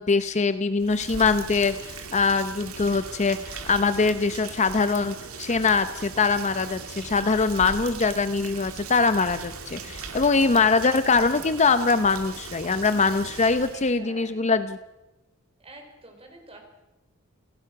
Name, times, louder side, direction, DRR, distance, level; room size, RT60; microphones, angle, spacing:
voice 1, 0.0-14.8, left 4 dB, 30° left, 12 dB, 0.7 m, -23 dB
Rain, 0.8-13.9, right 4 dB, 75° right, 2.5 m, -39 dB
voice 2, 14.0-14.6 15.6-16.6, right 1 dB, 25° right, 4 dB, 4.6 m, -47 dB
28.0 x 17.0 x 6.0 m, 1.0 s
head